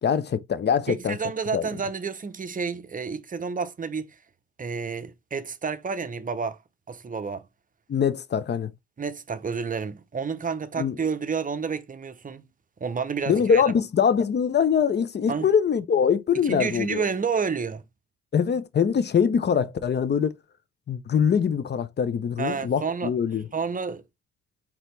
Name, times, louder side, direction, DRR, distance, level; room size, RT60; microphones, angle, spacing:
voice 1, 0.0-1.2 1.5-1.7 7.9-8.7 10.8-11.0 13.3-17.1 18.3-20.4 20.9-23.4, left 7 dB, 35° left, 0.6 m, -23 dB
voice 2, 0.9-4.1 4.6-6.6 6.9-7.4 9.0-12.4 12.8-13.6 15.3-15.5 16.3-17.8 22.4-23.1 23.5-24.0, right 5 dB, 25° right, 0.7 m, -30 dB
4.1 x 2.9 x 3.1 m
hypercardioid pair, 55°, 31 cm